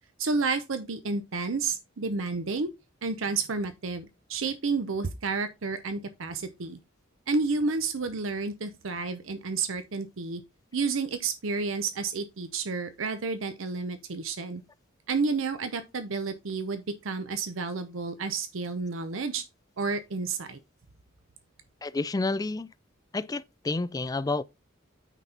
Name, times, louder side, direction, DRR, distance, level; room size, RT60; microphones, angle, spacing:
voice 1, 0.2-2.7 3.0-6.8 7.3-10.4 10.7-14.6 15.1-19.4 19.8-20.6, right 4 dB, 70° right, 0.7 m, -30 dB
voice 2, 21.8-22.7 23.1-24.4, left 3 dB, 20° left, 0.4 m, -29 dB
9.1 x 4.1 x 4.2 m
head